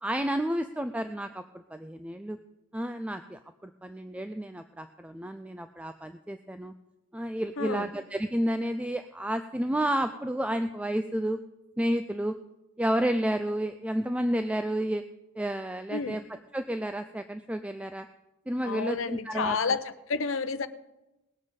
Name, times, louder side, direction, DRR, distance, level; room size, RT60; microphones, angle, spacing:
voice 1, 0.0-2.4 2.7-6.7 7.1-11.4 11.8-12.4 12.8-15.0 15.4-16.2 16.5-18.1 18.5-19.8, right 1 dB, 5° right, 8 dB, 0.4 m, -31 dB
voice 2, 7.6-7.9 15.9-16.2 18.6-19.8 20.1-20.7, left 4 dB, 75° left, 12 dB, 0.8 m, -30 dB
19.5 x 7.6 x 5.2 m, 0.98 s
head